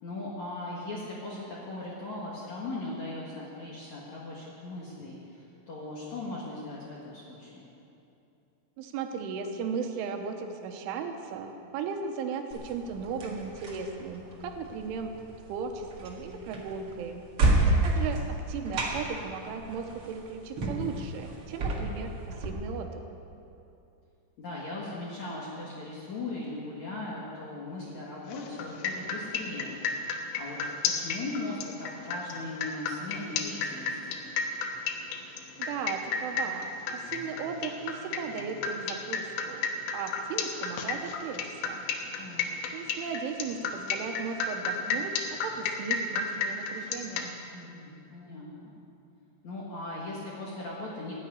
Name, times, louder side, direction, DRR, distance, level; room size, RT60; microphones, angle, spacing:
voice 1, 0.0-7.7 17.5-18.3 24.4-30.6 30.9-34.2 42.2-42.5 47.5-48.8 49.4-51.1, left 2 dB, 60° left, -5 dB, 2.0 m, -39 dB
voice 2, 8.8-15.2 15.5-17.2 17.8-23.0 35.6-41.9 42.7-47.3, right 5 dB, 85° right, 5 dB, 3.3 m, -36 dB
sound 1, 12.5-22.5, right 2 dB, 65° right, 1.3 m, -31 dB
sound 2, 28.3-47.3, left 5 dB, 75° left, 3.0 m, -32 dB
14.0 x 8.5 x 9.5 m, 2.7 s
omnidirectional pair, 5.7 m